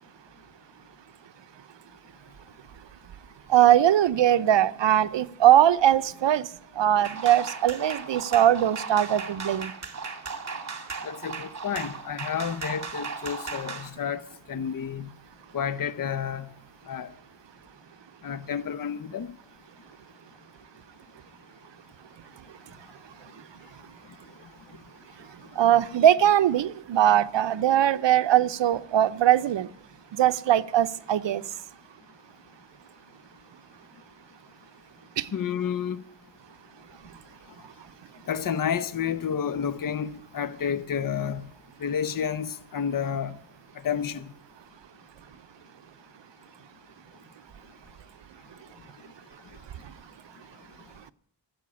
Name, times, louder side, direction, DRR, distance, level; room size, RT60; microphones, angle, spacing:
voice 1, 3.5-6.5 6.8-9.7 25.6-29.7 30.1-31.4 35.2-35.3, right 11 dB, 70° right, 0.7 m, -21 dB
sound 1, 7.0-13.9, right 4 dB, 35° right, 2.0 m, -36 dB
voice 2, 11.0-15.1 15.5-16.5 16.9-17.1 18.2-19.3 35.3-36.0 38.3-41.5 41.8-43.4 43.8-44.3, left 8 dB, 45° left, 0.8 m, -30 dB
13.5 x 7.9 x 9.6 m
wide cardioid pair, 100°, 46 cm